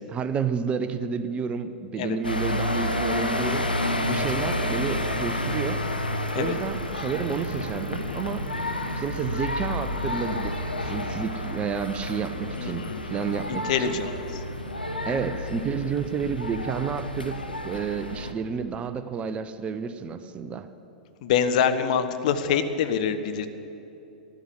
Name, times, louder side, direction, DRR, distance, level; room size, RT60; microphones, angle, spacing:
voice 1, 0.1-3.7 4.0-5.8 6.3-8.5 8.9-14.0 15.0-20.7, right 6 dB, 25° right, 12 dB, 0.6 m, -30 dB
sound 1, 2.2-18.3, left 1 dB, 90° left, 1.0 m, -30 dB
voice 2, 12.6-13.0 13.5-14.1 21.2-23.5, left 7 dB, 55° left, 9 dB, 1.0 m, -25 dB
14.0 x 11.0 x 7.4 m, 2.8 s
figure-of-eight pair, 95°, 5 cm